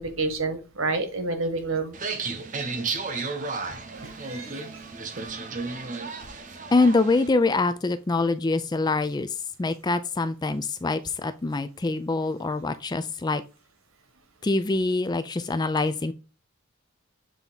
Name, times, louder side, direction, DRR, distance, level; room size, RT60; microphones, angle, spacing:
voice 1, 0.0-2.0 3.9-4.6, right 3 dB, 70° right, 1.3 m, -29 dB
sound 1, 1.9-7.3, right 4 dB, 35° right, 0.7 m, -33 dB
voice 2, 6.7-13.4 14.4-16.1, left 3 dB, 20° left, 0.3 m, -25 dB
7.4 x 3.5 x 3.9 m
head